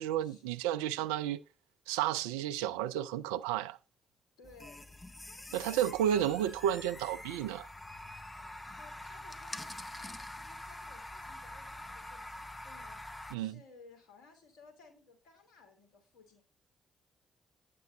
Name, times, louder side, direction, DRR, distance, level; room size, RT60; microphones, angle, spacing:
voice 1, 0.0-1.4 1.9-3.8 5.5-7.7 13.3-13.6, right 11 dB, 75° right, 0.4 m, -32 dB
voice 2, 4.4-5.0 5.5-5.8 8.4-13.0 13.3-16.4, left 3 dB, 65° left, 2.6 m, -59 dB
sound 1, 4.4-13.4, left 1 dB, 20° left, 1.0 m, -45 dB
9.3 x 6.7 x 4.0 m
figure-of-eight pair, 40°, 0 cm